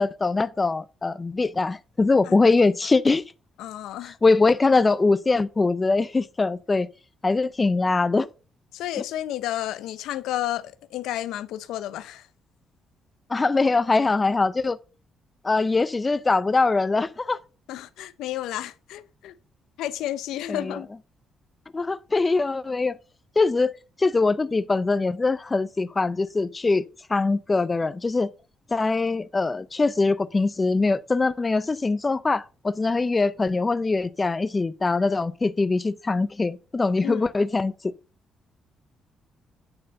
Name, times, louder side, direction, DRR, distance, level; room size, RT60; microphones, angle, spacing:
voice 1, 0.0-3.2 4.0-6.9 7.2-8.3 13.3-14.8 15.4-17.4 20.5-20.8 21.7-23.0 23.4-23.7 24.0-26.8 27.1-28.3 28.7-37.7, left 3 dB, 25° left, 0.4 m, -22 dB
voice 2, 3.6-4.2 8.7-12.3 17.7-19.3 19.8-20.9 37.0-37.3, left 13 dB, 85° left, 0.6 m, -31 dB
8.8 x 4.2 x 6.3 m
cardioid pair, 90°, 0 cm